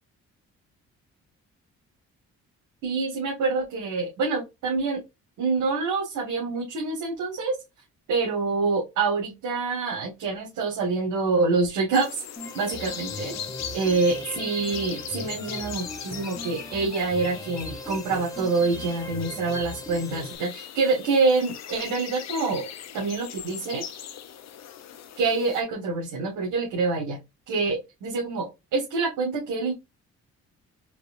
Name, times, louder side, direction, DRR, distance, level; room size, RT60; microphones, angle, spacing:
voice 1, 2.8-5.0 5.4-7.6 8.1-12.2 12.5-13.3 13.7-22.7 22.9-23.8 25.2-27.2 27.5-29.7, right 4 dB, 85° right, -2 dB, 1.8 m, -26 dB
sound 1, 11.9-25.6, left 9 dB, 60° left, 0.8 m, -40 dB
sound 2, 12.4-20.4, left 1 dB, 10° left, 0.9 m, -38 dB
4.7 x 3.2 x 2.6 m, 0.22 s
cardioid pair, 90°, 30 cm